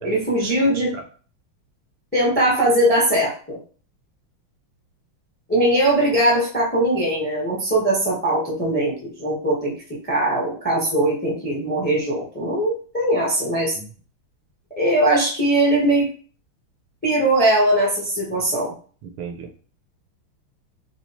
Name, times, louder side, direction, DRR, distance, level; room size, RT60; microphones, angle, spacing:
voice 1, 0.0-0.9 2.1-3.6 5.5-13.8 14.8-16.1 17.0-18.7, right 1 dB, 10° left, -4 dB, 0.5 m, -20 dB
voice 2, 19.0-19.6, right 6 dB, 75° right, 5 dB, 1.3 m, -35 dB
4.2 x 2.3 x 2.9 m, 0.41 s
omnidirectional pair, 2.3 m